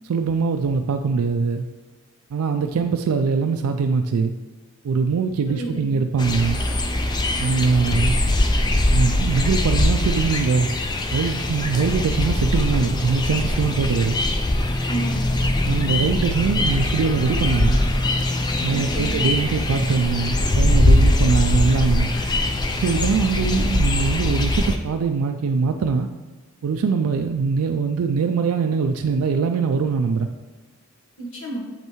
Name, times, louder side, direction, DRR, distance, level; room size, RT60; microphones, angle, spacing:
voice 1, 0.1-1.6 2.3-4.3 4.8-6.6 7.4-8.1 8.9-10.7 11.1-14.2 15.7-17.8 18.6-22.1 22.8-26.1 26.6-30.3, right 5 dB, 80° right, 5 dB, 0.3 m, -22 dB
voice 2, 5.5-6.0 14.9-15.5 18.7-19.2 31.2-31.6, right 2 dB, 65° left, -3 dB, 1.7 m, -31 dB
sound 1, 6.2-24.8, left 1 dB, 20° left, 0.4 m, -21 dB
7.4 x 5.4 x 3.1 m, 1.3 s
head